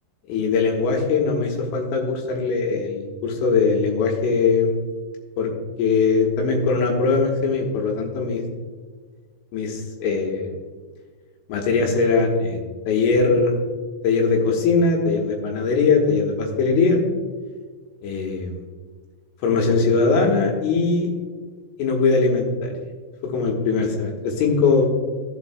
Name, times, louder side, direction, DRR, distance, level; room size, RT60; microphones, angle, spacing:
voice 1, 0.3-4.7 5.4-5.5 5.8-8.4 9.5-10.5 11.5-12.6 12.9-13.5 14.0-17.0 18.0-18.6 19.4-21.1 21.8-22.7 23.2-24.9, left 4 dB, 80° left, 0 dB, 3.6 m, -20 dB
14.5 x 7.7 x 2.2 m, 1.5 s
omnidirectional pair, 5.9 m